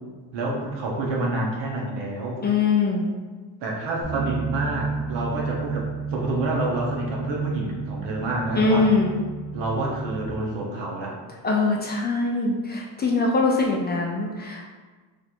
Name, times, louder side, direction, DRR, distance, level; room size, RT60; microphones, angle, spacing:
voice 1, 0.3-2.4 3.6-8.9 9.5-11.2, right 2 dB, 80° right, -2 dB, 1.1 m, -28 dB
voice 2, 2.4-3.1 8.6-9.2 11.4-14.7, left 3 dB, 25° left, -2 dB, 0.5 m, -22 dB
Bass guitar, 4.0-10.3, right 4 dB, 15° right, 1.0 m, -32 dB
3.1 x 2.6 x 4.4 m, 1.4 s
cardioid pair, 135°, 43 cm